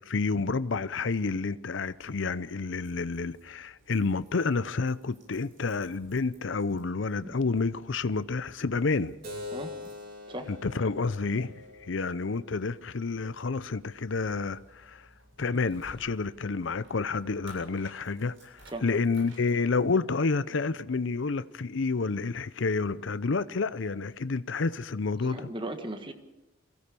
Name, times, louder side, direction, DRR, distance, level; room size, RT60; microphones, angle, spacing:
voice 1, 0.0-9.2 10.5-15.1 15.4-25.5, left 4 dB, 65° left, 0.6 m, -29 dB
sound 1, 1.8-19.9, right 1 dB, 70° right, 7.5 m, -59 dB
Keyboard (musical), 9.2-14.3, left 2 dB, 50° right, 3.5 m, -45 dB
voice 2, 25.2-26.1, right 1 dB, 25° right, 1.5 m, -37 dB
23.5 x 16.5 x 6.9 m
head